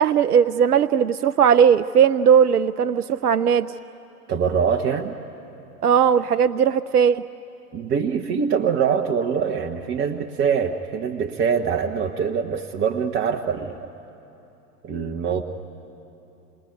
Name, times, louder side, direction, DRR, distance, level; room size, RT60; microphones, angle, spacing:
voice 1, 0.0-3.7 5.8-7.3, right 8 dB, 75° right, 13 dB, 0.6 m, -18 dB
voice 2, 4.3-5.2 7.7-13.9 14.8-15.4, right 6 dB, 25° right, 2 dB, 1.0 m, -24 dB
28.0 x 19.5 x 9.9 m, 2.9 s
figure-of-eight pair, 90°, 46 cm